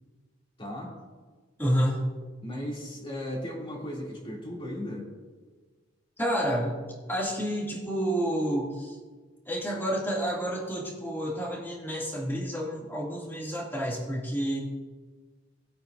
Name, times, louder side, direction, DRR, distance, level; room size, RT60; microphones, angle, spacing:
voice 1, 0.6-0.9 2.4-5.1, equal, 30° left, -3 dB, 2.8 m, -36 dB
voice 2, 1.6-2.0 6.2-6.8 7.1-9.0 9.4-14.6, equal, 10° left, -5 dB, 2.5 m, -29 dB
20.5 x 8.5 x 2.6 m, 1.4 s
head